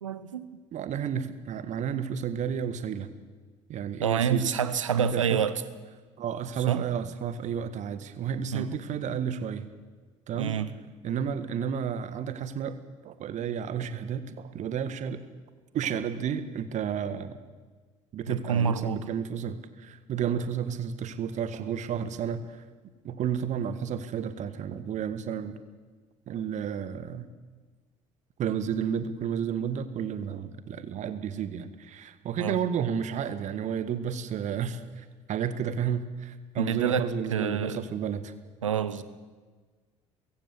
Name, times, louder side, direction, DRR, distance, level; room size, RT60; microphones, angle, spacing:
voice 1, 0.0-0.5 4.0-5.6 6.7-6.8 8.5-8.7 10.3-10.7 18.3-19.1 32.4-32.6 36.6-37.8 38.6-39.0, right 7 dB, 80° right, 14 dB, 1.0 m, -27 dB
voice 2, 0.7-3.1 3.7-4.5 5.0-5.4 6.2-9.7 10.3-10.6 11.0-12.8 13.0-15.2 15.7-17.4 18.1-22.6 23.0-25.6 26.3-27.3 28.4-38.3, right 8 dB, 50° right, 12 dB, 1.7 m, -32 dB
22.0 x 16.0 x 8.4 m, 1.4 s
figure-of-eight pair, 55°, 16 cm